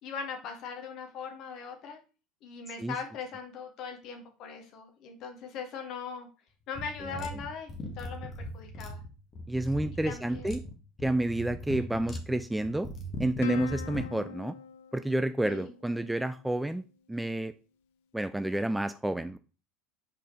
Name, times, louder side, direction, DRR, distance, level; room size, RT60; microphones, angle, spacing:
voice 1, 0.0-2.0 2.4-6.3 6.7-9.0 10.0-10.7 11.7-12.0 15.4-15.7, left 6 dB, 50° left, 4 dB, 1.6 m, -40 dB
sound 1, 6.7-14.1, left 1 dB, 35° left, 1.5 m, -40 dB
voice 2, 9.5-10.6 11.0-12.9 13.2-14.6 14.9-16.8 17.1-17.5 18.1-19.4, right 1 dB, 5° right, 12 dB, 0.4 m, -30 dB
Plucked string instrument, 13.4-16.2, left 5 dB, 65° left, 0.7 m, -41 dB
5.3 x 4.3 x 4.8 m, 0.34 s
figure-of-eight pair, 70°, 0 cm